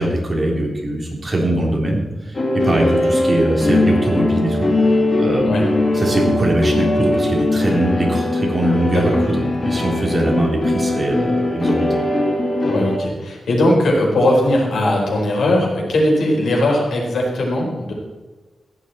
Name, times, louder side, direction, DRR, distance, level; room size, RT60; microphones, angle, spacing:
voice 1, 0.0-2.4 2.6-11.9, right 1 dB, 20° right, -1 dB, 3.5 m, -21 dB
sound 1, 2.3-13.0, left 2 dB, 35° left, 1.9 m, -20 dB
voice 2, 8.9-9.2 12.6-17.9, left 1 dB, 90° left, -1 dB, 4.8 m, -18 dB
15.5 x 11.5 x 4.4 m, 1.2 s
wide cardioid pair, 130°, 0 cm